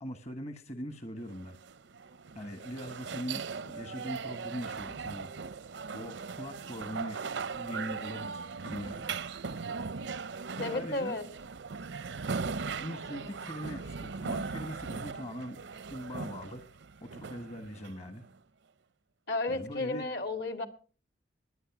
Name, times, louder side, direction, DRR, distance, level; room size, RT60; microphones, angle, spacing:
voice 1, 0.0-1.6 2.3-5.3 5.9-7.2 7.5-9.1 10.6-11.2 12.8-15.6 15.9-16.6 17.0-18.2 19.5-20.0, equal, 40° left, 9 dB, 1.3 m, -41 dB
sound 1, 1.3-18.3, right 5 dB, 85° right, 0.6 m, -39 dB
voice 2, 10.6-11.3 19.3-20.7, left 2 dB, 65° left, 10 dB, 2.4 m, -33 dB
21.0 x 9.1 x 5.9 m, 0.41 s
head